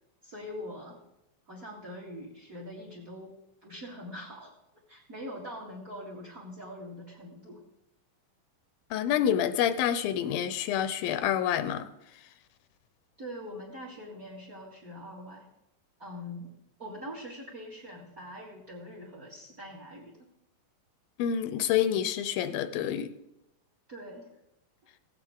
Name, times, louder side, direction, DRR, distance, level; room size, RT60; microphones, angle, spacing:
voice 1, 0.2-1.0 1.5-3.3 3.6-7.6 13.2-15.5 16.0-16.5 16.8-20.3 23.9-24.3, equal, 35° right, -1 dB, 1.6 m, -43 dB
voice 2, 8.9-11.9 21.2-23.1, left 10 dB, 90° left, 11 dB, 2.5 m, -28 dB
16.5 x 8.3 x 3.6 m, 0.88 s
omnidirectional pair, 4.1 m